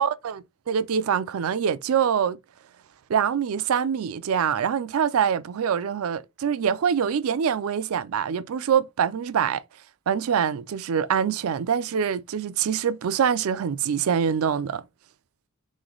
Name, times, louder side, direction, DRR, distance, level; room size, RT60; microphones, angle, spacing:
voice 1, 0.0-2.4 3.1-9.6 10.1-14.8, right 7 dB, 75° right, 0.4 m, -24 dB
3.8 x 3.2 x 3.8 m
head